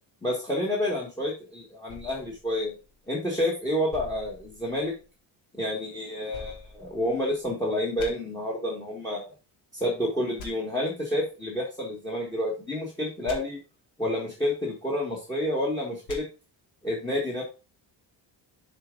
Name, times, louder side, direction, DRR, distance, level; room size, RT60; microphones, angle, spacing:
voice 1, 0.2-2.7 3.1-4.9 5.5-9.3 9.7-13.6 14.0-16.2 16.8-17.4, left 1 dB, 10° left, -2 dB, 1.4 m, -29 dB
sound 1, 1.9-3.3 3.9-5.1 6.3-7.5 8.0-8.1 10.4-10.5 13.2-13.4 16.1-16.2, left 2 dB, 85° left, 1.8 m, -45 dB
6.9 x 4.2 x 3.8 m, 0.33 s
cardioid pair, 155°, 44 cm